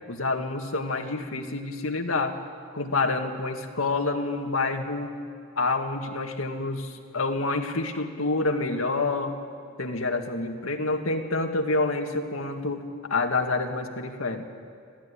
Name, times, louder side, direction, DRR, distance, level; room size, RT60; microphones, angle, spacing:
voice 1, 0.0-2.3 2.7-5.1 5.6-9.4 9.8-14.5, left 3 dB, 85° left, 4 dB, 2.0 m, -28 dB
25.0 x 16.5 x 10.0 m, 2.2 s
head